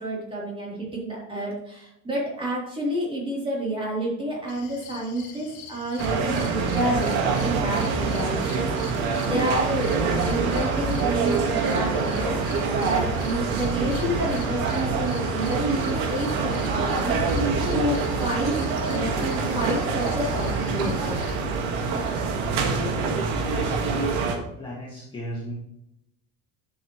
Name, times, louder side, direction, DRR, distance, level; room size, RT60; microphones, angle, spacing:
voice 1, 0.0-9.9 10.1-12.3 12.7-21.1, right 1 dB, 15° right, -5 dB, 3.5 m, -29 dB
sound 1, 4.5-21.4, left 6 dB, 65° left, 2.2 m, -45 dB
sound 2, 6.0-24.4, right 4 dB, 85° right, 1.8 m, -25 dB
sound 3, 17.1-19.7, left 4 dB, 30° left, 1.0 m, -35 dB
voice 2, 23.5-24.2 24.6-25.5, left 1 dB, 15° left, -6 dB, 2.1 m, -35 dB
10.5 x 7.3 x 3.2 m, 0.84 s
cardioid pair, 170°, 33 cm